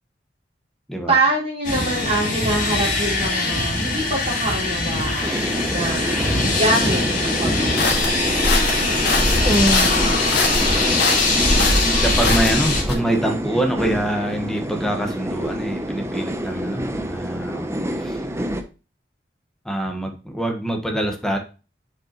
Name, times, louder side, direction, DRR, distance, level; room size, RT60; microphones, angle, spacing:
voice 1, 1.1-6.0 6.5-8.1, right 2 dB, 35° right, -3 dB, 3.5 m, -24 dB
sound 1, 1.6-12.8, left 3 dB, 50° left, 2.3 m, -22 dB
sound 2, 5.2-18.6, equal, 15° right, 0.6 m, -27 dB
sound 3, 7.8-12.9, left 2 dB, 85° left, 1.8 m, -22 dB
voice 2, 9.4-10.0 11.5-18.2 19.6-21.4, right 1 dB, 5° left, 3 dB, 1.2 m, -25 dB
7.2 x 5.3 x 2.9 m, 0.32 s
head